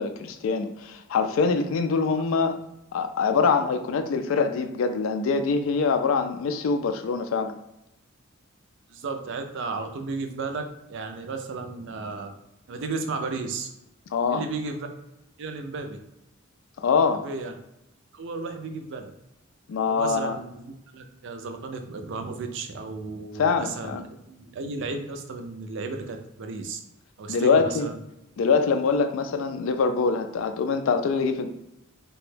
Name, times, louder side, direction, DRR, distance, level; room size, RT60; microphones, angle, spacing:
voice 1, 0.0-2.6 2.9-7.5 14.1-14.4 16.8-17.2 19.7-20.4 23.4-24.0 27.3-27.9 28.4-31.5, left 5 dB, 70° left, 7 dB, 0.3 m, -24 dB
voice 2, 8.9-12.3 12.7-13.7 14.3-14.9 15.4-16.0 17.2-17.5 18.1-19.1 19.9-26.8 27.2-28.0, right 3 dB, 60° right, 6 dB, 0.4 m, -34 dB
2.9 x 2.2 x 3.2 m, 0.88 s
head